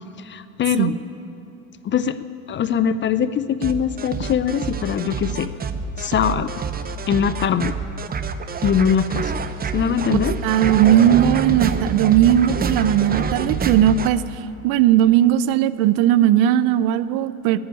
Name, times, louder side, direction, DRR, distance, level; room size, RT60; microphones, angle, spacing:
voice 1, 0.2-0.9 1.8-2.2 2.5-5.5 6.0-6.5 7.1-7.8 8.6-9.3 9.7-10.3, left 8 dB, 25° left, 13 dB, 0.5 m, -21 dB
sound 1, 3.6-14.1, right 5 dB, 20° right, 0.8 m, -27 dB
voice 2, 10.1-14.2 14.6-17.6, right 11 dB, 55° right, 16 dB, 0.7 m, -17 dB
14.0 x 10.5 x 9.7 m, 2.7 s
hypercardioid pair, 90°, 42 cm